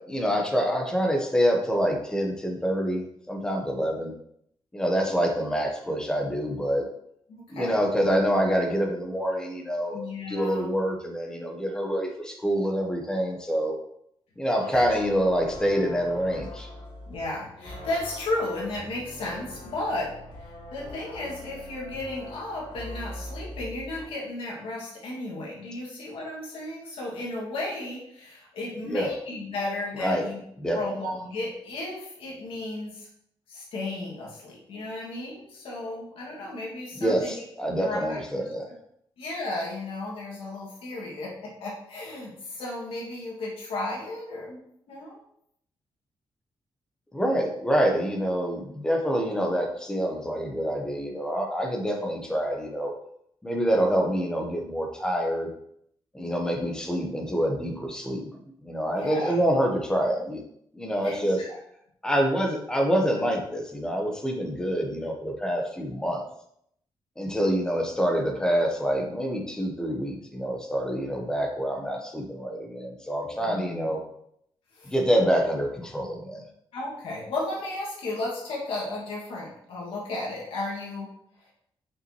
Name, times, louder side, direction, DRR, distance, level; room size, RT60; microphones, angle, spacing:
voice 1, 0.1-4.1 4.7-6.8 7.5-10.0 10.3-13.8 14.4-16.7 28.9-29.1 30.0-30.2 30.6-30.8 37.0-38.7 47.1-52.9 53.4-55.5 56.1-58.3 58.6-60.4 60.7-61.4 62.0-66.2 67.2-74.0 74.8-76.4, equal, 10° left, 2 dB, 0.9 m, -26 dB
voice 2, 7.3-7.7 9.9-10.7 14.7-14.9 17.1-20.1 20.4-30.4 30.7-33.1 33.5-37.4 37.8-38.5 39.2-45.2 53.8-53.9 58.9-59.4 61.0-61.6 73.4-74.0 74.8-74.9 76.7-81.1, left 2 dB, 85° left, -4 dB, 2.0 m, -34 dB
sound 1, 14.6-24.0, left 1 dB, 60° left, 1.8 m, -42 dB
5.9 x 5.4 x 3.0 m, 0.72 s
wide cardioid pair, 170°, 9 cm